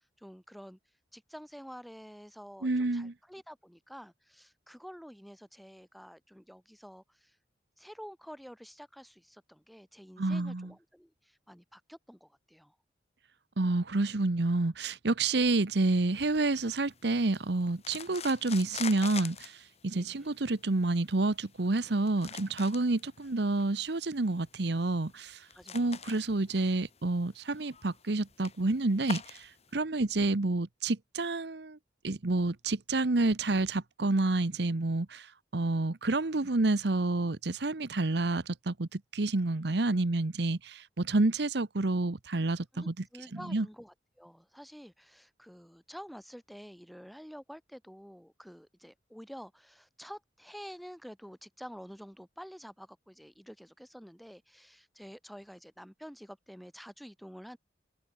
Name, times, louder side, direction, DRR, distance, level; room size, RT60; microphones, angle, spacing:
voice 1, 0.2-0.8 1.1-7.4 7.8-12.8 19.9-20.3 25.5-26.1 42.7-57.6, equal, ahead, 4.2 m, -49 dB
voice 2, 2.6-3.1 10.2-10.7 13.6-25.5 25.7-31.8 32.0-43.0 43.3-43.7, right 2 dB, 65° right, 1.0 m, -29 dB
sound 1, 16.1-29.8, left 7 dB, 35° left, 2.3 m, -47 dB
head